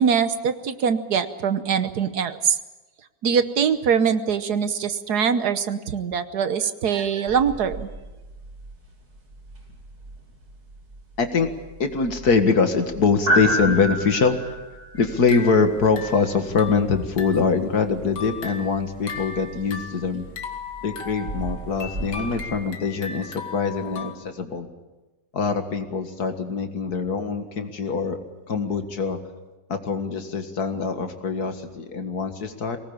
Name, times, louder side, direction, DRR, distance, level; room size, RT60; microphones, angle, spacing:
voice 1, 0.0-2.6 3.2-7.9, right 7 dB, 65° right, 11 dB, 1.5 m, -23 dB
sound 1, 7.3-22.4, right 1 dB, 85° right, 6.0 m, -33 dB
voice 2, 11.2-11.5 11.8-14.5 14.9-20.3 20.8-24.7 25.3-28.2 28.5-29.2 29.7-32.8, left 4 dB, 60° left, 7 dB, 2.2 m, -23 dB
sound 2, 15.0-17.6 18.0-24.1, left 5 dB, 85° left, 2.4 m, -38 dB
23.0 x 19.0 x 8.7 m, 1.1 s
omnidirectional pair, 1.9 m